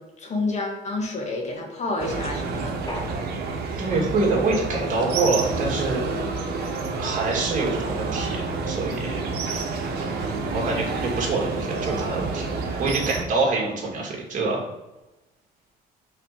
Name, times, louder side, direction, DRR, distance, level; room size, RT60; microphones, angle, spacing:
voice 1, 0.0-2.7, left 2 dB, 40° left, 0 dB, 1.9 m, -29 dB
sound 1, 2.0-13.2, right 4 dB, 70° right, 1.2 m, -29 dB
sound 2, 2.9-3.9 5.2-6.0, left 1 dB, 25° left, 1.2 m, -39 dB
voice 2, 3.8-6.1 7.0-9.3 10.0-14.6, right 3 dB, 50° right, -2 dB, 2.4 m, -26 dB
5.7 x 4.0 x 5.1 m, 1.0 s
cardioid pair, 110°, 17 cm